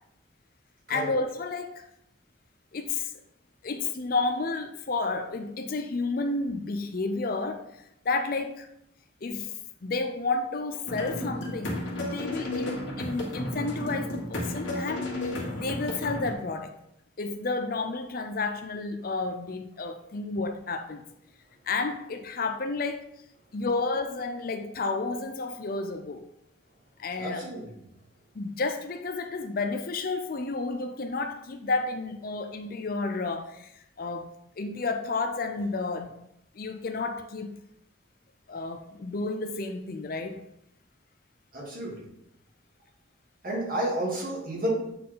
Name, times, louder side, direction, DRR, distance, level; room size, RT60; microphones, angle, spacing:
voice 1, 0.9-1.7 2.7-3.1 3.6-7.6 8.1-8.7 9.2-9.5 9.8-15.1 15.5-16.7 17.2-21.0 21.7-23.1 23.5-26.3 27.0-27.5 28.4-33.7 34.0-36.2 36.6-37.6 38.5-40.4, left 3 dB, 45° left, 0.5 m, -31 dB
sound 1, 10.9-16.3, left 1 dB, 75° left, 1.8 m, -33 dB
voice 2, 27.2-27.8 41.5-42.0 43.4-44.7, right 1 dB, 45° right, 2.6 m, -31 dB
8.4 x 4.3 x 3.9 m
head